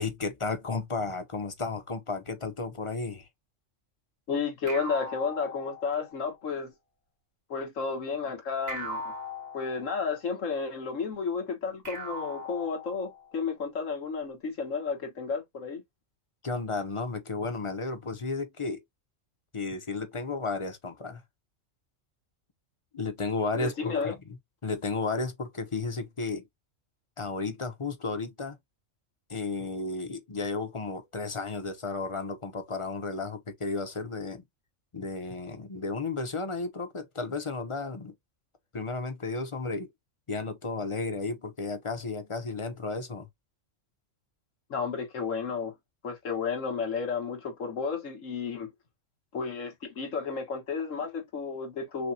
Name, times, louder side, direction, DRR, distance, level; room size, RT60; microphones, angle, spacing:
voice 1, 0.0-3.3 16.4-18.8 19.5-21.2 22.9-24.2 24.6-26.4 27.2-28.6 29.3-34.4 34.9-38.1 38.7-39.9 40.3-43.3, left 3 dB, 30° left, 0.8 m, -33 dB
voice 2, 4.3-6.7 7.5-9.1 9.5-15.8 23.6-24.1 44.7-45.7 46.0-48.7 49.3-52.1, left 5 dB, 85° left, 1.8 m, -32 dB
sound 1, 4.7-6.3 8.7-10.3 11.8-13.4, left 1 dB, 50° right, 1.8 m, -39 dB
6.2 x 2.3 x 2.7 m
omnidirectional pair, 1.3 m